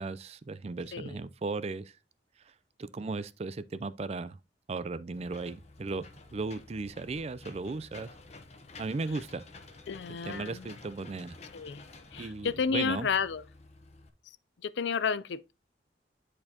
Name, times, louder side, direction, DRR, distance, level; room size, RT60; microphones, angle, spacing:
voice 1, 0.0-2.0 2.5-2.6 2.8-4.4 4.7-6.1 6.3-8.1 8.8-9.5 10.2-11.4 12.2-13.1, right 3 dB, 35° right, 0.4 m, -36 dB
Engine / Mechanisms, 5.1-14.1, left 3 dB, 35° left, 0.9 m, -51 dB
voice 2, 9.9-10.7 11.5-11.8 12.1-13.4 14.6-15.5, left 6 dB, 75° left, 0.4 m, -31 dB
10.0 x 4.4 x 2.8 m
head